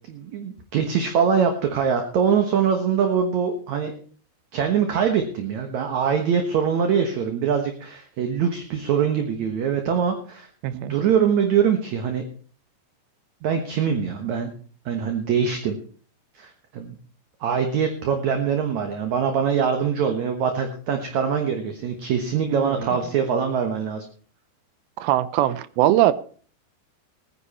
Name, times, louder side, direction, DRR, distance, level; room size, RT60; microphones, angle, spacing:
voice 1, 0.1-3.9 4.5-10.5 10.7-12.3 13.4-14.5 14.9-15.8 16.4-17.0 17.4-24.1, right 7 dB, 60° right, 5 dB, 2.0 m, -23 dB
voice 2, 10.6-10.9 22.5-22.9 25.0-26.1, right 14 dB, 75° right, 15 dB, 2.4 m, -21 dB
18.5 x 10.0 x 4.3 m, 0.43 s
omnidirectional pair, 4.8 m